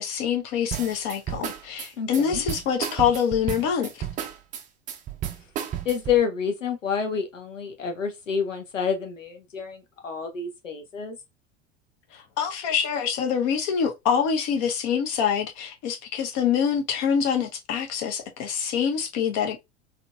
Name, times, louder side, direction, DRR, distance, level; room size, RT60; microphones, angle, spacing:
voice 1, 0.0-4.1 12.1-19.6, left 7 dB, 45° left, 0.9 m, -25 dB
sound 1, 0.7-6.2, right 10 dB, 20° right, 0.4 m, -32 dB
voice 2, 2.0-2.4 5.8-11.2, left 7 dB, 80° left, 0.8 m, -28 dB
3.7 x 2.9 x 2.3 m
figure-of-eight pair, 75°, 37 cm